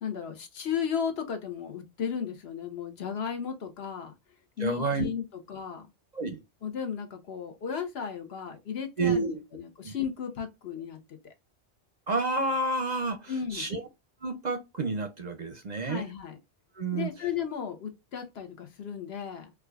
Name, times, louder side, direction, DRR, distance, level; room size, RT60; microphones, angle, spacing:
voice 1, 0.0-4.1 4.6-5.9 6.6-11.0 11.2-11.3 13.3-13.7 15.8-16.4 16.9-19.5, left 7 dB, 65° left, 1.1 m, -34 dB
voice 2, 4.6-5.1 6.1-6.4 9.0-9.4 9.8-9.9 12.1-13.8 14.2-16.0 16.8-17.1, right 3 dB, 50° right, 0.6 m, -29 dB
4.7 x 2.3 x 2.3 m
omnidirectional pair, 1.1 m